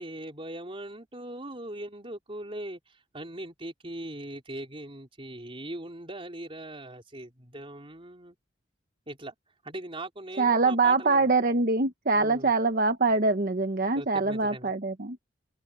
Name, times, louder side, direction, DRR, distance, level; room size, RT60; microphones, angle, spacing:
voice 1, 0.0-8.4 9.1-9.3 9.6-11.3 12.1-12.5 13.9-14.7, right 1 dB, 30° right, 3.9 m, -40 dB
voice 2, 10.4-15.2, right 3 dB, 50° right, 1.0 m, -24 dB
head